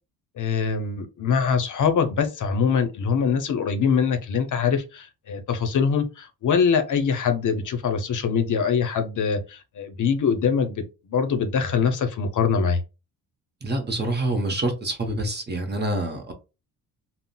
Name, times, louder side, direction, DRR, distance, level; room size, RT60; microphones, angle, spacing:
voice 1, 0.4-12.8, left 6 dB, 50° left, 0.6 m, -23 dB
voice 2, 13.6-16.3, right 1 dB, 25° right, 0.8 m, -26 dB
3.6 x 2.0 x 2.2 m
cardioid pair, 80°, 40 cm